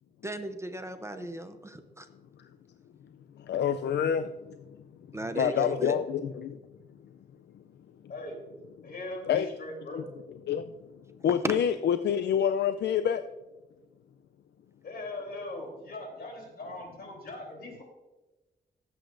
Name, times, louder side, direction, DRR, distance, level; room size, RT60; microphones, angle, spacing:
voice 1, 0.2-2.1 5.1-5.9, right 2 dB, 15° right, 8 dB, 0.6 m, -37 dB
voice 2, 3.4-4.6 5.3-6.6 9.3-9.5 10.0-10.1 10.5-10.7 11.2-13.2, left 8 dB, 85° left, 10 dB, 0.4 m, -27 dB
voice 3, 8.8-10.1 14.8-17.8, left 2 dB, 70° left, 1 dB, 3.2 m, -40 dB
17.5 x 8.1 x 2.6 m, 1.1 s
wide cardioid pair, 135°, 17 cm